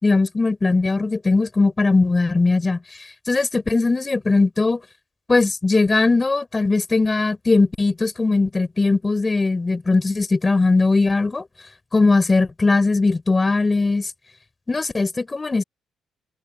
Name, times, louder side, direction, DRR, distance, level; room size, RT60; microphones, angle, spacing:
voice 1, 0.0-2.8 3.3-4.8 5.3-11.4 11.9-14.1 14.7-15.6, left 3 dB, 25° left, 5.6 m, -19 dB
cardioid pair, 90°, 0 cm